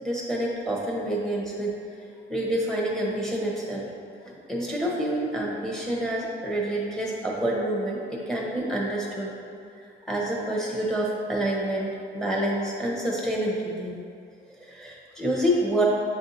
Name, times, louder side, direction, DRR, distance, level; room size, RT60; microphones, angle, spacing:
voice 1, 0.0-1.7 2.3-3.9 4.5-9.3 10.1-14.0 14.5-15.8, right 1 dB, 5° left, -3 dB, 1.0 m, -28 dB
7.3 x 2.6 x 2.7 m, 2.4 s
cardioid pair, 90°, 20 cm